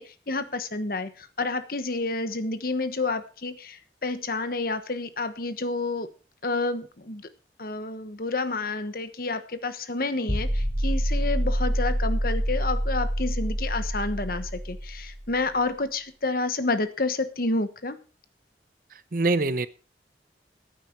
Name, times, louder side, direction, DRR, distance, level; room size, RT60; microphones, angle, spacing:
voice 1, 0.0-6.1 6.4-7.3 7.6-18.0, left 3 dB, 55° left, 11 dB, 1.2 m, -29 dB
sound 1, 10.3-15.3, equal, ahead, 4.4 m, -27 dB
voice 2, 18.9-19.7, right 3 dB, 50° right, 15 dB, 0.7 m, -25 dB
15.0 x 8.9 x 4.5 m, 0.36 s
head